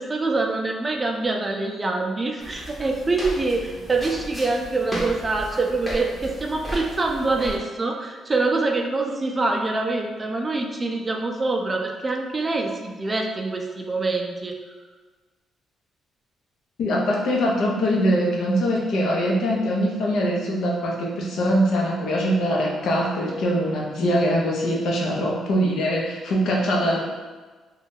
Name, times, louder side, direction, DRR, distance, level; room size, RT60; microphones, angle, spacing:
voice 1, 0.0-14.6, right 3 dB, 25° right, 2 dB, 0.4 m, -25 dB
sound 1, 2.4-7.6, equal, 20° left, 0.8 m, -35 dB
voice 2, 16.8-27.0, equal, 75° left, -2 dB, 0.6 m, -22 dB
2.6 x 2.3 x 3.6 m, 1.3 s
cardioid pair, 90°, 0 cm